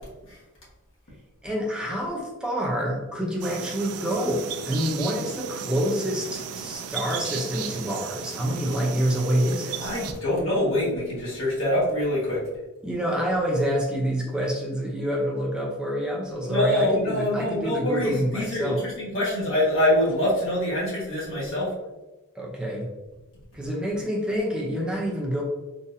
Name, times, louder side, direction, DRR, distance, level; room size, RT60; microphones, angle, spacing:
voice 1, 1.4-9.9 12.8-18.9 22.3-22.9 23.5-25.4, equal, 5° right, -3 dB, 0.5 m, -27 dB
sound 1, 3.4-10.1, right 8 dB, 75° right, 0.3 m, -35 dB
voice 2, 9.8-12.4 16.5-21.7, left 1 dB, 60° left, -7 dB, 1.4 m, -25 dB
3.9 x 2.6 x 2.6 m, 1.1 s
head